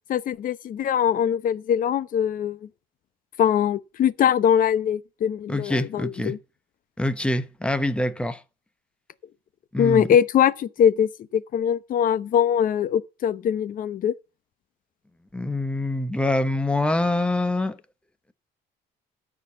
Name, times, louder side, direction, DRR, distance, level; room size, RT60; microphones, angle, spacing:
voice 1, 0.1-2.6 3.4-6.4 9.8-14.1, left 9 dB, 55° left, 0.9 m, -22 dB
voice 2, 5.5-6.3 7.0-8.4 9.7-10.2 15.3-17.8, left 1 dB, 5° left, 1.2 m, -25 dB
13.0 x 4.9 x 6.9 m
cardioid pair, 110°, 17 cm